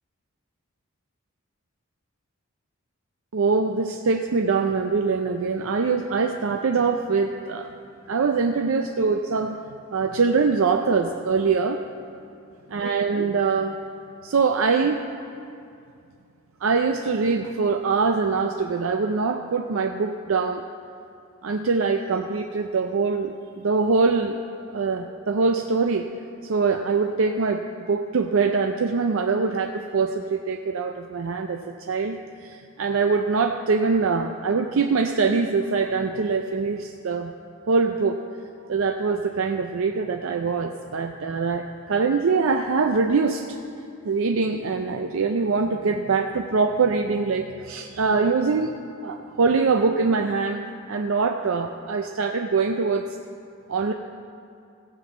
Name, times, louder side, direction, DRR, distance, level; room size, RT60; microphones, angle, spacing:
voice 1, 3.3-7.7 8.1-9.6 9.9-11.8 12.7-13.8 14.2-15.0 16.6-20.6 21.4-24.4 24.7-26.1 26.4-37.3 37.7-38.2 38.7-43.4 44.0-48.7 49.0-53.2 53.7-53.9, right 4 dB, 65° right, 5 dB, 0.5 m, -23 dB
16.0 x 6.0 x 7.3 m, 2.4 s
head